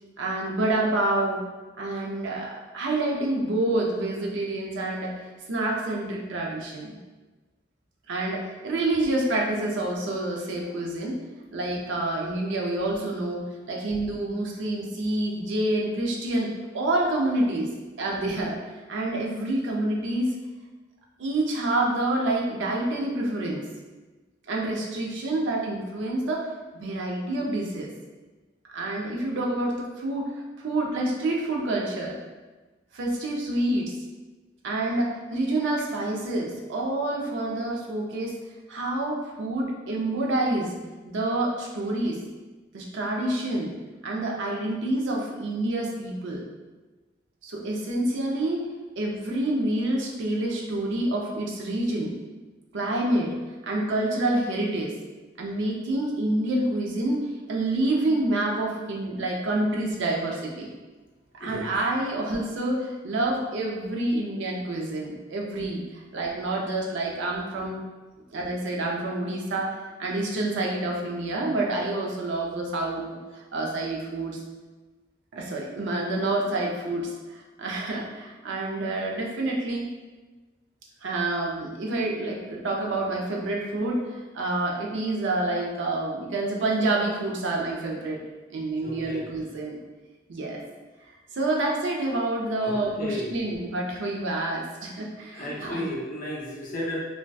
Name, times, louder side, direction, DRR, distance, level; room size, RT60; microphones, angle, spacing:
voice 1, 0.2-1.4 1.8-7.0 8.1-11.2 11.5-20.4 21.2-23.6 24.5-27.9 28.7-32.2 32.9-33.9 34.6-38.4 38.7-40.8 41.0-42.2 42.7-43.7 44.0-46.5 47.4-48.6 49.0-52.1 52.7-53.3 53.6-54.9 55.4-57.2 57.5-60.7 61.3-67.8 68.3-69.7 70.0-73.0 73.3-74.4 75.3-79.9 81.0-88.2 88.5-89.8 90.3-90.6 91.3-95.8, right 2 dB, 70° right, -1 dB, 0.4 m, -28 dB
voice 2, 61.4-61.7 88.8-89.4 92.6-93.3 95.3-97.0, left 1 dB, 50° left, -4 dB, 0.5 m, -34 dB
2.5 x 2.1 x 2.2 m, 1.2 s
head